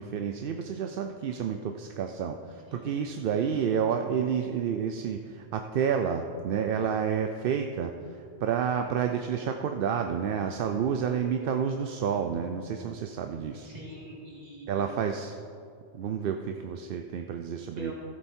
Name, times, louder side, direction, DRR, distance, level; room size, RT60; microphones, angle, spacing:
voice 1, 0.0-13.7 14.7-15.4 15.9-17.9, right 7 dB, 60° right, 6 dB, 0.7 m, -30 dB
voice 2, 13.6-14.9 17.8-17.9, right 1 dB, 35° right, -4 dB, 2.6 m, -44 dB
14.0 x 8.0 x 4.3 m, 2.4 s
omnidirectional pair, 1.2 m